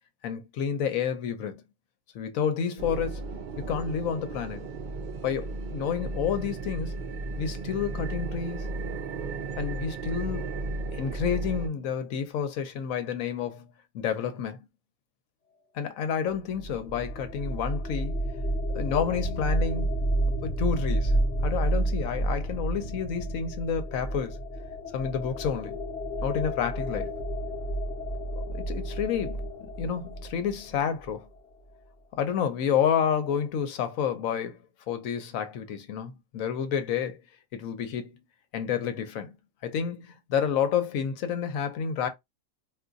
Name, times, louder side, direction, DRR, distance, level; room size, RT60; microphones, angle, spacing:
voice 1, 0.2-1.6 2.1-3.2 3.6-4.7 5.2-6.9 7.4-8.7 9.6-10.6 10.9-13.7 13.9-14.6 15.7-18.1 18.7-19.9 20.3-21.2 21.4-24.4 24.9-25.8 26.2-27.1 28.5-29.5 29.8-31.3 32.1-34.6 34.9-37.2 37.5-38.2 38.5-39.4 39.6-42.1, left 7 dB, 75° left, 1.0 m, -29 dB
sound 1, 2.8-11.7, right 3 dB, 65° right, 0.4 m, -35 dB
sound 2, 16.3-31.1, right 1 dB, 35° left, 0.8 m, -30 dB
2.6 x 2.3 x 3.8 m
omnidirectional pair, 1.5 m